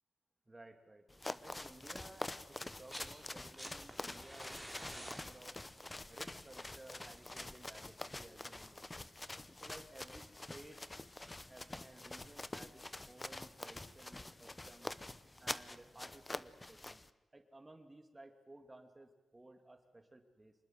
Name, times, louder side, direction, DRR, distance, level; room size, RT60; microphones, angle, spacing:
voice 1, 0.5-5.6 6.1-9.1 9.6-10.2 10.5-10.8 11.5-14.9 15.4-20.5, right 2 dB, 20° right, 6 dB, 2.6 m, -57 dB
sound 1, 1.1-17.1, left 2 dB, 20° left, 0.8 m, -46 dB
sound 2, 2.6-3.1 3.4-8.3 9.5-9.6, equal, 5° left, 3.5 m, -52 dB
26.0 x 20.0 x 7.8 m, 1.0 s
wide cardioid pair, 110°, 0 cm